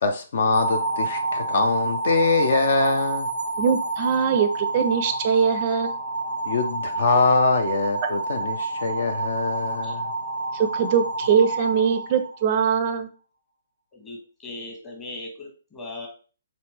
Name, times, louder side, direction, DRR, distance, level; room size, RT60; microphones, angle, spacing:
voice 1, 0.0-3.3 6.4-10.1, left 3 dB, 55° left, 7 dB, 0.5 m, -23 dB
sound 1, 0.5-12.7, right 2 dB, 85° left, 1.4 m, -29 dB
voice 2, 3.6-5.9 10.5-13.1, right 7 dB, 35° right, 9 dB, 0.4 m, -22 dB
voice 3, 13.9-16.1, left 2 dB, 20° left, 0 dB, 1.2 m, -38 dB
4.1 x 3.1 x 3.2 m, 0.37 s
figure-of-eight pair, 130°, 0 cm